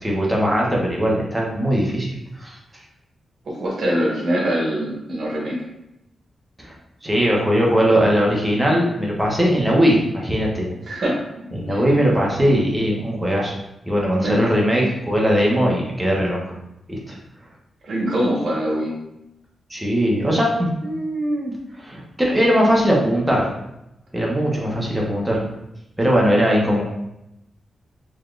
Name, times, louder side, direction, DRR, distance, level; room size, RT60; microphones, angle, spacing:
voice 1, 0.0-2.1 2.4-2.6 6.6-6.7 7.0-10.7 11.5-13.5 13.9-16.5 16.9-17.1 19.7-23.5 24.1-25.4 26.0-26.8, equal, 10° right, -3 dB, 0.9 m, -20 dB
voice 2, 3.4-5.6 10.8-11.8 14.2-14.4 17.8-18.9, equal, 60° right, -3 dB, 1.2 m, -23 dB
4.0 x 3.3 x 2.4 m, 0.86 s
wide cardioid pair, 120°, 0 cm